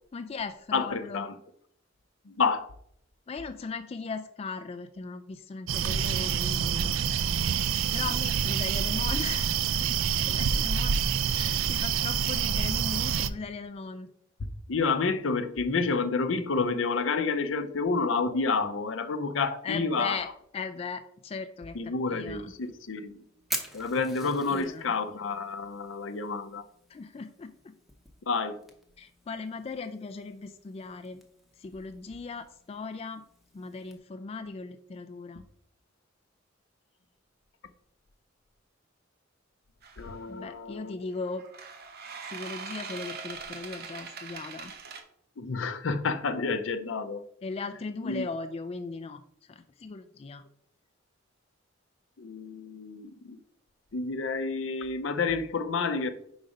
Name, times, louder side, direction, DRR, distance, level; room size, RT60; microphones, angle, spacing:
voice 1, 0.1-1.2 3.3-6.9 7.9-11.0 11.3-14.1 19.6-21.7 22.1-22.5 24.5-24.9 26.9-27.7 29.0-31.2 31.6-33.2 33.5-35.5 40.3-41.5 42.3-44.7 47.4-49.2 49.5-50.4, left 4 dB, 30° left, 0.3 m, -38 dB
voice 2, 0.7-1.3 2.3-2.7 14.7-20.2 21.7-23.2 23.7-26.6 28.3-28.6 40.0-41.0 45.4-47.2 48.0-48.3 52.2-53.4 53.9-56.1, left 4 dB, 70° left, 0.6 m, -29 dB
sound 1, 5.7-13.3, right 7 dB, 85° right, 0.4 m, -27 dB
Fire, 22.5-34.0, equal, ahead, 0.7 m, -45 dB
sound 2, 39.8-40.1 41.4-45.0, right 5 dB, 50° right, 0.8 m, -41 dB
4.9 x 4.0 x 5.2 m
head